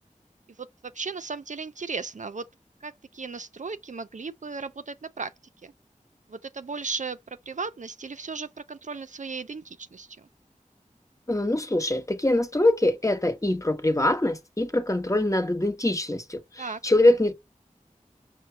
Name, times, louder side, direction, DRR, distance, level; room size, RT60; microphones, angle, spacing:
voice 1, 0.9-2.5 2.8-5.3 5.6-5.7 6.3-7.2 7.5-10.3 16.6-16.8, right 4 dB, 65° right, 0.4 m, -36 dB
voice 2, 11.3-17.3, left 1 dB, 25° left, 0.8 m, -23 dB
5.5 x 2.1 x 4.3 m
wide cardioid pair, 50°, 14 cm